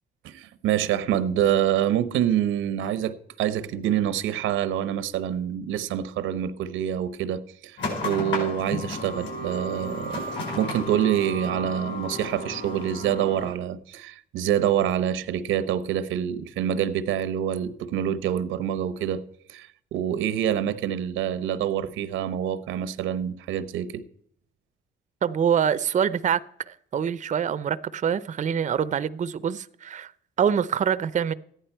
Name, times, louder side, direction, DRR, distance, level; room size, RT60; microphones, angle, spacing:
voice 1, 0.2-10.2 10.6-19.2 19.5-24.0, right 10 dB, 90° right, 0.8 m, -26 dB
sound 1, 7.8-13.5, left 2 dB, 65° left, 5.5 m, -33 dB
voice 2, 25.2-30.1 30.4-31.3, right 8 dB, 40° right, 0.5 m, -25 dB
14.0 x 10.0 x 4.5 m
cardioid pair, 90°, 20 cm